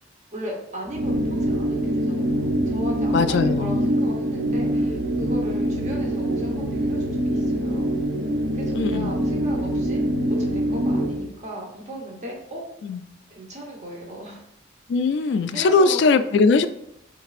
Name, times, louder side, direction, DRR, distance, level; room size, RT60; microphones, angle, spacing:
voice 1, 0.3-7.9 8.5-10.0 10.3-12.6 13.3-14.4 15.2-16.0, equal, 35° right, 0 dB, 1.0 m, -36 dB
sound 1, 0.9-11.3, equal, 65° right, 0.6 m, -24 dB
voice 2, 3.1-3.8 8.8-9.1 12.8-13.0 14.9-16.7, left 4 dB, 70° left, 12 dB, 0.3 m, -20 dB
6.5 x 3.3 x 2.4 m, 0.78 s
head